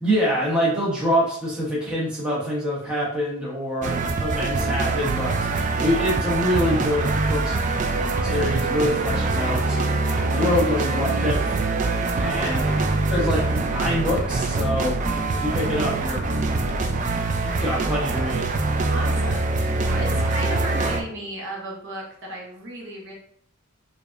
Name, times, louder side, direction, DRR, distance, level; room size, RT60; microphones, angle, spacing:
voice 1, 0.0-5.5 5.8-7.6 8.2-9.8 10.3-11.6 12.2-12.7 13.1-14.9 15.3-16.2 17.4-18.5, equal, 5° right, -6 dB, 1.0 m, -25 dB
sound 1, 3.8-21.0, right 3 dB, 35° right, 0.3 m, -24 dB
Bird, 12.2-20.2, left 1 dB, 50° left, 0.6 m, -41 dB
voice 2, 12.2-12.8 18.9-23.1, right 1 dB, 55° right, -2 dB, 1.0 m, -35 dB
4.8 x 2.7 x 2.5 m, 0.63 s
head